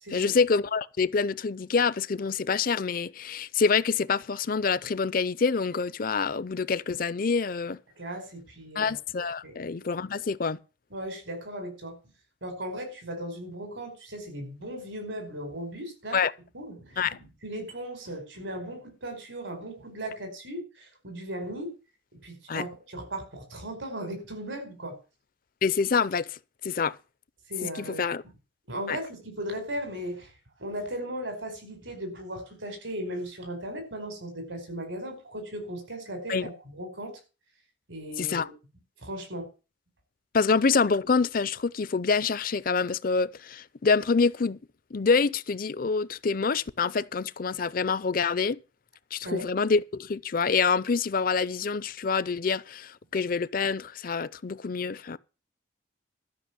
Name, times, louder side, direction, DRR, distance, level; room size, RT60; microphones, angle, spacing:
voice 1, 0.1-7.8 8.8-10.6 16.1-16.3 17.0-17.2 22.5-22.6 25.6-27.0 27.6-28.2 28.9-29.0 36.3-36.5 38.2-38.5 40.3-44.6 44.9-48.6 49.1-55.2, left 5 dB, 50° left, 0.5 m, -26 dB
voice 2, 8.0-8.9 9.4-9.6 10.9-11.9 12.4-16.2 16.5-21.7 22.1-25.0 27.5-28.1 28.7-30.3 30.6-37.2 37.9-38.4 39.0-39.5 49.2-49.5, right 1 dB, 80° right, 4.9 m, -37 dB
13.0 x 6.0 x 8.1 m
head